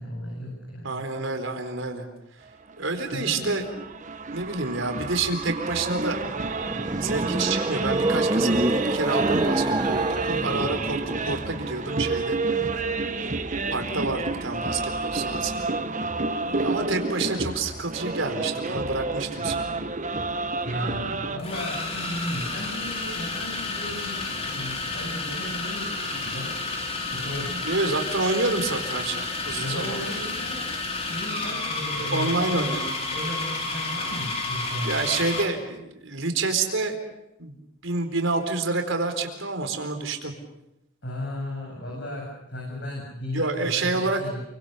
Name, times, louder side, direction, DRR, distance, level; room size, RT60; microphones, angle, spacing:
voice 1, 0.0-1.0 3.1-3.5 20.6-26.6 27.1-27.5 29.6-30.7 31.0-32.7 33.1-35.0 41.0-44.4, left 1 dB, 60° left, -2 dB, 8.0 m, -35 dB
voice 2, 0.8-2.1 2.8-3.6 4.3-6.2 7.0-12.4 13.7-15.6 16.5-19.9 27.5-30.2 32.1-32.9 34.8-37.0 37.4-37.6 37.8-40.3 43.3-44.2, right 3 dB, 80° right, 5 dB, 4.2 m, -28 dB
sound 1, 2.7-21.4, right 3 dB, 40° right, 1.5 m, -30 dB
sound 2, 6.3-11.6, right 1 dB, 20° right, 0.9 m, -27 dB
sound 3, 20.1-20.2 21.4-35.6, left 3 dB, 30° left, 4.2 m, -31 dB
29.5 x 24.0 x 6.9 m, 0.88 s
head